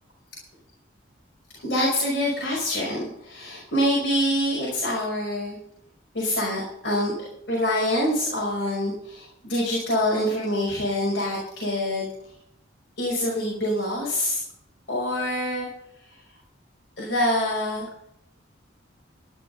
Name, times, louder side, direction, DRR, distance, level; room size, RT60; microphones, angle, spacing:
voice 1, 1.5-5.6 6.1-7.1 7.5-12.1 13.0-14.4 14.9-15.7 17.0-17.9, left 1 dB, 55° left, -4 dB, 5.4 m, -25 dB
13.5 x 10.5 x 5.4 m, 0.77 s
head